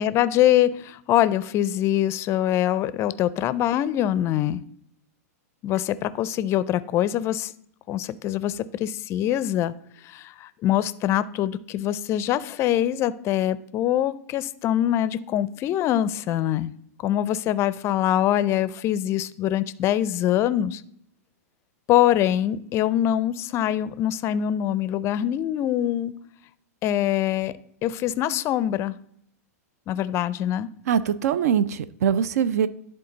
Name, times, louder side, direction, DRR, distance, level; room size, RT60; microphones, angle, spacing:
voice 1, 0.0-4.6 5.6-7.5 7.9-9.7 10.0-16.7 17.0-20.8 21.9-26.1 26.8-27.5 27.8-28.9 29.9-30.7, left 12 dB, 30° left, 16 dB, 0.4 m, -24 dB
voice 2, 30.9-32.7, right 8 dB, 70° right, 16 dB, 0.5 m, -22 dB
11.0 x 3.8 x 3.9 m, 0.70 s
hypercardioid pair, 120°, 9 cm